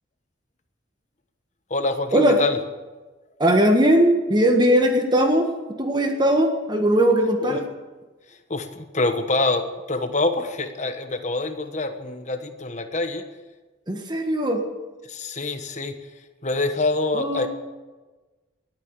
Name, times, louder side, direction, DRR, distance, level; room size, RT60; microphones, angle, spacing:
voice 1, 1.7-2.6 7.4-7.6 8.3-13.3 15.0-16.1 16.4-17.5, left 2 dB, 35° left, 8 dB, 1.2 m, -26 dB
voice 2, 3.4-5.5 5.8-7.6 13.9-14.6 17.1-17.5, equal, 20° right, 4 dB, 1.5 m, -19 dB
18.0 x 9.3 x 8.2 m, 1.2 s
head